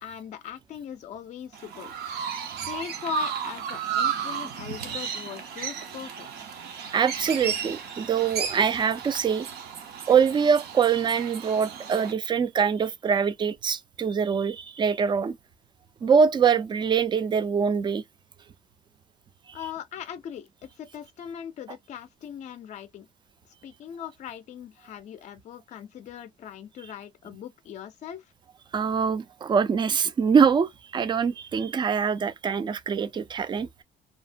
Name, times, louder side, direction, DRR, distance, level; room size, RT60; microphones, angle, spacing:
voice 1, 0.0-1.9 2.6-6.5 19.5-23.1 23.6-28.3, left 9 dB, 45° left, 0.4 m, -40 dB
Chirp tweet, 1.5-12.1, right 7 dB, 70° right, 0.7 m, -33 dB
voice 2, 6.7-9.5 10.1-15.4 16.0-18.0 28.7-33.8, right 6 dB, 25° right, 0.3 m, -24 dB
2.7 x 2.1 x 2.4 m
cardioid pair, 110°, 17 cm